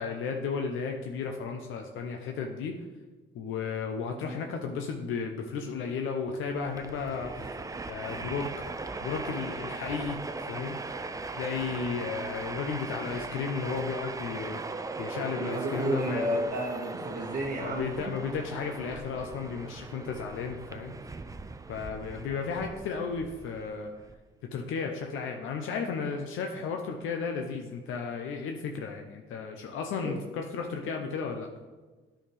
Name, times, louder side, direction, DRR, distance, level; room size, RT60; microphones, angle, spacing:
voice 1, 0.0-2.8 3.3-7.3 7.9-8.5 9.0-10.8 11.4-14.6 15.0-16.4 17.6-20.9 21.7-23.9 24.5-31.5, left 5 dB, 85° left, 3 dB, 0.7 m, -34 dB
Train, 6.5-24.1, right 3 dB, 15° right, 0.4 m, -39 dB
voice 2, 15.4-17.9 30.0-30.2, right 1 dB, 45° right, -2 dB, 1.1 m, -32 dB
9.7 x 5.7 x 3.4 m, 1.3 s
cardioid pair, 90°, 20 cm